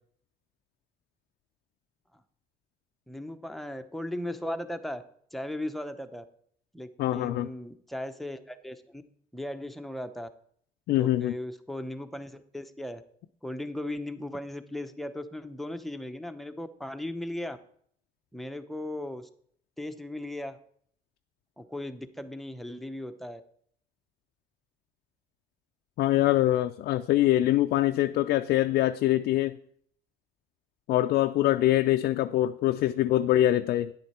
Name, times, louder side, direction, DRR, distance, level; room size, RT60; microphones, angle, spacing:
voice 1, 3.1-5.0 5.3-6.2 6.7-9.0 9.3-10.3 11.0-13.0 13.4-17.6 18.3-19.3 19.8-20.6 21.6-23.4, left 1 dB, ahead, 0.7 m, -37 dB
voice 2, 7.0-7.5 10.9-11.3 26.0-29.6 30.9-33.9, left 14 dB, 70° left, 0.4 m, -24 dB
10.5 x 7.8 x 4.3 m
cardioid pair, 110°, 17 cm